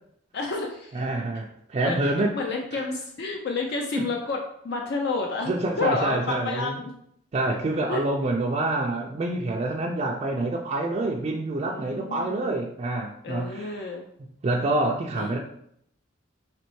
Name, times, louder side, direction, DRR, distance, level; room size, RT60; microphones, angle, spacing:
voice 1, 0.3-1.0 1.8-6.9 7.5-7.6 7.9-8.0 11.6-12.4 13.2-14.1 15.2-15.4, left 3 dB, 55° left, 2 dB, 0.4 m, -30 dB
voice 2, 0.9-2.3 2.7-2.8 4.0-4.1 5.5-6.8 7.3-13.9 14.4-15.4, right 2 dB, 30° right, -1 dB, 0.3 m, -27 dB
4.2 x 2.9 x 3.1 m, 0.72 s
head